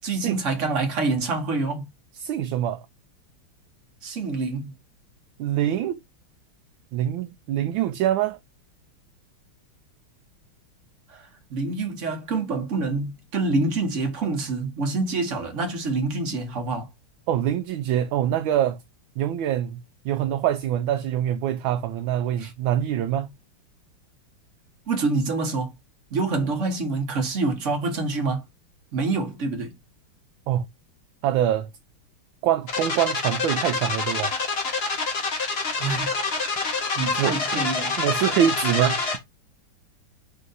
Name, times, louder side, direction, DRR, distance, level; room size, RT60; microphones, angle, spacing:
voice 1, 0.0-1.9 4.0-4.7 11.1-16.9 22.4-22.5 24.9-25.7 26.1-28.4 28.9-29.7 35.8-36.2 37.0-37.9, right 3 dB, 50° right, 0.9 m, -26 dB
voice 2, 2.2-2.8 5.4-6.0 6.9-8.4 17.3-18.8 19.2-19.8 20.0-23.3 30.5-30.6 31.2-31.7 32.4-34.3 37.2-37.3 38.0-39.0, right 11 dB, 75° right, 1.2 m, -24 dB
sound 1, 32.7-39.2, left 4 dB, 40° left, 0.9 m, -26 dB
4.4 x 2.7 x 3.8 m
omnidirectional pair, 2.4 m